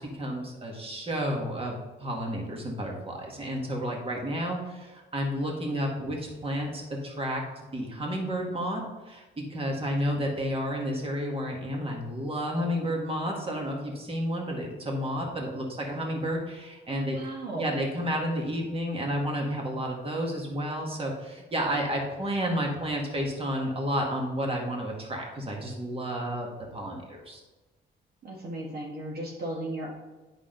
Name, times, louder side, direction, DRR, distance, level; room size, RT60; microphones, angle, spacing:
voice 1, 0.0-7.4 7.7-9.2 9.5-17.2 17.5-27.4, equal, 30° right, 0 dB, 1.9 m, -31 dB
voice 2, 16.9-17.7 28.2-29.9, right 1 dB, 50° right, -3 dB, 1.7 m, -35 dB
8.3 x 6.1 x 4.0 m, 1.2 s
cardioid pair, 90°, 20 cm